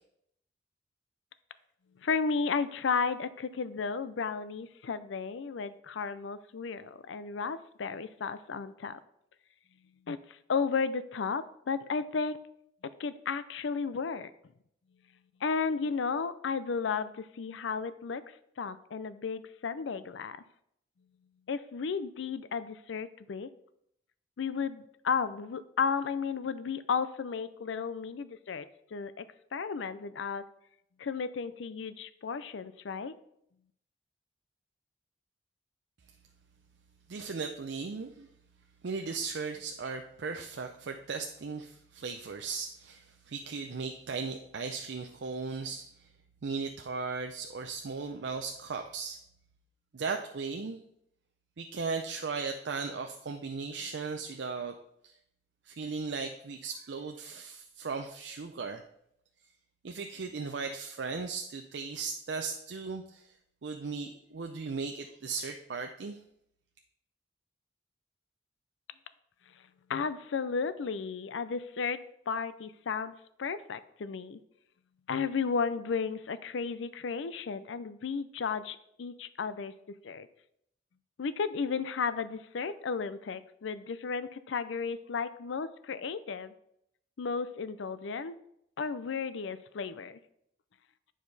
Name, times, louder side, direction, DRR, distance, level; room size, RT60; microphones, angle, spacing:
voice 1, 2.0-9.0 10.1-12.4 13.0-14.3 15.4-18.2 18.6-20.4 21.5-23.5 24.4-28.7 28.9-29.3 29.5-30.4 31.0-33.1 69.9-72.0 72.3-74.4 75.1-79.7 80.0-80.3 81.2-86.5 87.2-88.4 88.8-90.2, left 5 dB, 80° left, 14 dB, 0.5 m, -33 dB
voice 2, 37.1-38.3 38.8-45.9 46.4-49.2 49.9-50.8 51.6-54.7 55.0-55.1 55.7-58.8 59.8-63.3 63.6-66.2, right 4 dB, 70° right, 4 dB, 0.5 m, -37 dB
8.9 x 5.0 x 4.0 m, 0.74 s
head